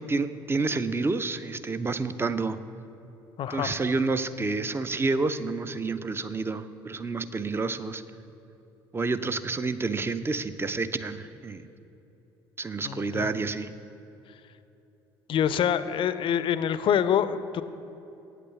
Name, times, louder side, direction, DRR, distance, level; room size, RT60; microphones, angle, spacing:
voice 1, 0.0-2.6 3.5-8.0 8.9-11.7 12.6-13.7, right 3 dB, 20° right, 11 dB, 0.5 m, -29 dB
voice 2, 3.4-3.7 12.8-13.3 15.3-17.6, left 9 dB, 45° left, 14 dB, 0.5 m, -26 dB
8.5 x 8.2 x 6.9 m, 3.0 s
figure-of-eight pair, 55°, 12 cm